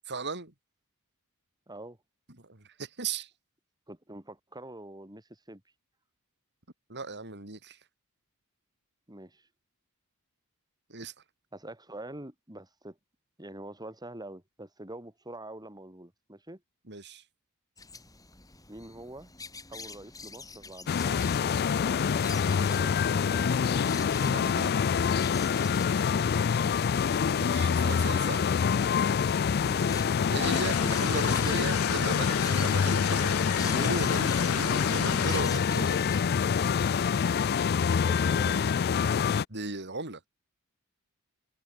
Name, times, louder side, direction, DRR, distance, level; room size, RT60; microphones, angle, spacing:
voice 1, 0.1-0.5 2.4-3.3 6.9-7.8 10.9-11.1 16.9-17.2 24.2-24.9 27.4-28.4 30.3-36.0 39.5-40.2, right 3 dB, 50° right, 5.2 m, -37 dB
voice 2, 1.7-2.0 3.9-5.6 9.1-9.5 11.5-13.0 13.4-16.6 18.7-19.3 19.7-22.9 23.2-24.0 29.6-29.9 38.1-38.9, right 1 dB, 20° right, 4.6 m, -45 dB
sound 1, 17.8-36.2, left 4 dB, 15° left, 5.2 m, -47 dB
sound 2, 20.9-39.4, left 6 dB, 45° left, 0.4 m, -26 dB
sound 3, 30.4-35.4, left 8 dB, 80° left, 4.4 m, -35 dB
head